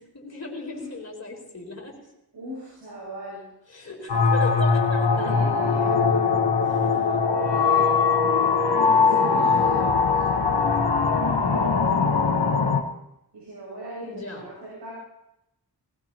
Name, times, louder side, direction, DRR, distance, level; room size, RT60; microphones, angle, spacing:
voice 1, 0.0-1.9 3.7-5.3 6.7-7.0 14.0-14.5, left 1 dB, 40° left, -1 dB, 4.0 m, -37 dB
voice 2, 2.3-3.5 5.1-6.6 7.5-8.0 9.0-11.2 13.3-14.9, right 1 dB, 90° right, -7 dB, 6.7 m, -38 dB
sound 1, 4.1-12.8, left 5 dB, 80° left, 1.3 m, -21 dB
19.5 x 18.0 x 2.9 m, 0.85 s
wide cardioid pair, 105°, 40 cm